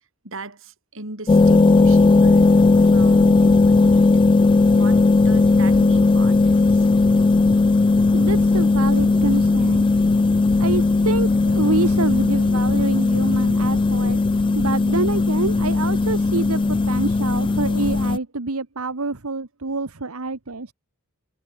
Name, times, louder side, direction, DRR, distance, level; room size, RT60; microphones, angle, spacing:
voice 1, 0.2-4.2 4.7-6.9, right 2 dB, 65° right, 6.5 m, -37 dB
sound 1, 1.3-18.2, left 3 dB, 25° left, 0.3 m, -17 dB
voice 2, 8.1-9.9 10.6-14.2 14.5-20.7, right 3 dB, 85° right, 1.5 m, -27 dB
head